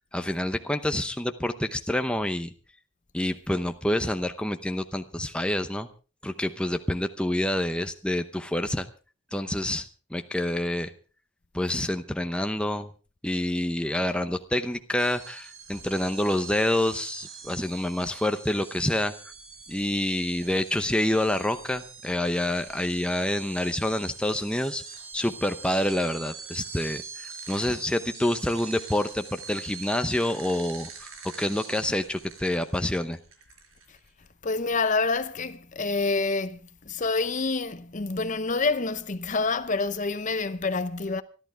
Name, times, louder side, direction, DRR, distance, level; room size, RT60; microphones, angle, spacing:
voice 1, 0.1-2.5 3.1-5.9 6.2-8.9 9.3-10.9 11.5-12.9 13.2-19.1 19.7-24.8 25.1-31.1 31.4-33.2, left 1 dB, 5° left, 0.8 m, -27 dB
sound 1, 15.0-34.1, right 5 dB, 85° right, 4.9 m, -44 dB
voice 2, 34.4-36.6 36.9-41.2, left 3 dB, 35° left, 0.7 m, -27 dB
25.5 x 12.0 x 3.4 m
head